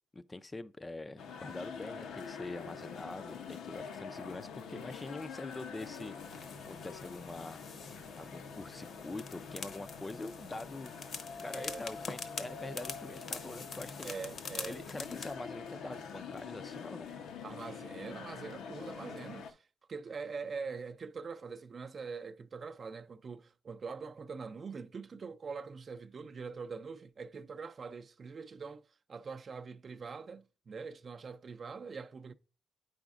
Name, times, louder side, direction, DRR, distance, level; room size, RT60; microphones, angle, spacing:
voice 1, 0.1-6.2 6.6-7.6 8.2-10.9 11.4-14.1 14.7-17.1, left 2 dB, 20° left, 0.4 m, -44 dB
sound 1, 1.2-19.5, left 6 dB, 80° left, 0.7 m, -46 dB
sound 2, 6.2-15.4, left 4 dB, 50° left, 0.8 m, -45 dB
voice 2, 11.5-11.9 14.0-14.8 17.4-28.8 29.1-32.3, right 5 dB, 40° right, 0.5 m, -43 dB
8.6 x 5.0 x 2.4 m
cardioid pair, 90°, 0 cm